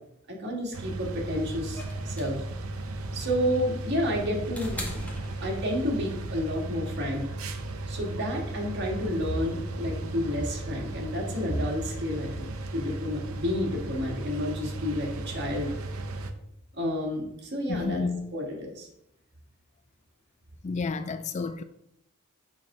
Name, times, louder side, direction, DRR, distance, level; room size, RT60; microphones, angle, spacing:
voice 1, 0.3-2.4 3.1-5.0 5.4-7.3 7.9-15.7 16.8-18.0 18.3-18.9, equal, 55° right, 1.8 m, -30 dB
sound 1, 0.7-16.3, right 2 dB, 80° right, 0.7 m, -36 dB
sound 2, 1.7-6.0 7.3-7.4, left 1 dB, 5° left, 1.5 m, -41 dB
voice 2, 17.7-18.3 20.6-21.6, left 4 dB, 35° left, 0.4 m, -31 dB
6.2 x 4.3 x 4.9 m
head